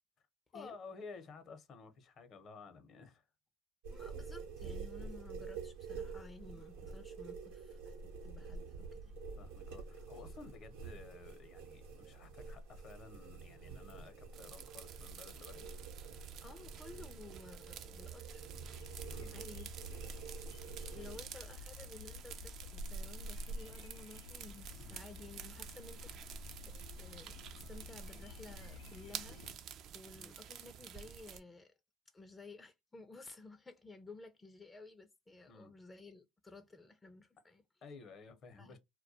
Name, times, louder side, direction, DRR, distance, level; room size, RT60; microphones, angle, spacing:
voice 1, 0.5-3.2 6.5-6.7 9.4-15.7 19.1-19.4 21.0-21.1 24.8-25.0 30.1-30.4 35.5-35.7 37.8-38.8, left 4 dB, 50° left, 0.7 m, -54 dB
sound 1, 3.8-21.2, right 4 dB, 80° right, 0.8 m, -48 dB
voice 2, 3.9-7.9 8.2-9.1 16.4-18.5 19.3-19.7 20.9-29.4 29.9-31.7 32.1-37.6 38.6-38.8, left 3 dB, 15° left, 0.4 m, -54 dB
sound 2, 14.3-31.4, right 9 dB, 55° right, 0.4 m, -51 dB
sound 3, 18.7-29.5, left 1 dB, 90° left, 0.6 m, -49 dB
2.2 x 2.1 x 2.6 m
supercardioid pair, 80°, 0 cm